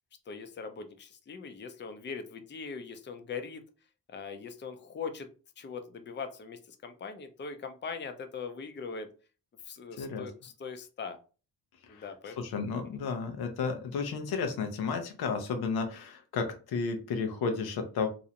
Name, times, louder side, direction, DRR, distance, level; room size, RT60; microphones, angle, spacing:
voice 1, 0.3-3.6 4.1-9.1 9.6-11.2 11.9-12.4 12.9-13.0, left 5 dB, 30° left, 7 dB, 0.5 m, -41 dB
voice 2, 10.0-10.3 11.9-12.0 12.4-18.1, left 5 dB, 85° left, 5 dB, 0.6 m, -32 dB
2.5 x 2.0 x 2.7 m, 0.36 s
cardioid pair, 55°, 37 cm